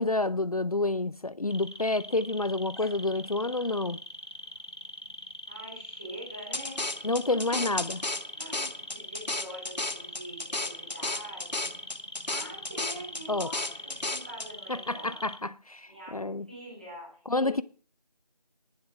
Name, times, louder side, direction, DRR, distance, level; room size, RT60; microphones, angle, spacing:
voice 1, 0.0-4.0 7.0-8.0 13.3-13.5 14.7-16.5 17.3-17.6, left 2 dB, 60° left, 0.5 m, -29 dB
sound 1, 1.5-15.4, equal, 35° left, 1.0 m, -43 dB
voice 2, 5.5-6.8 7.3-7.6 8.4-11.6 12.3-15.2 15.9-17.6, equal, 10° right, 3.3 m, -45 dB
sound 2, 6.5-14.5, left 2 dB, 85° left, 1.1 m, -34 dB
11.5 x 9.6 x 6.1 m
figure-of-eight pair, 175°, 21 cm